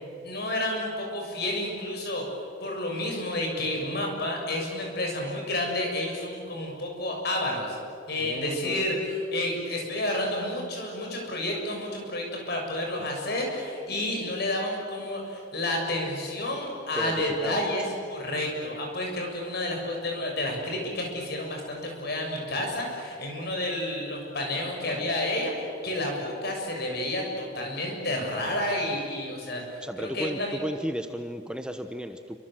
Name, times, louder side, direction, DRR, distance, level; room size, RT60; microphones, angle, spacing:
voice 1, 0.2-2.3 2.6-7.8 8.1-30.6, left 1 dB, 55° left, 1 dB, 7.0 m, -30 dB
voice 2, 8.2-8.9 13.0-13.1 16.9-17.7 24.9-25.0 29.8-32.4, equal, 5° right, 6 dB, 1.0 m, -34 dB
28.5 x 25.5 x 7.8 m, 2.4 s
head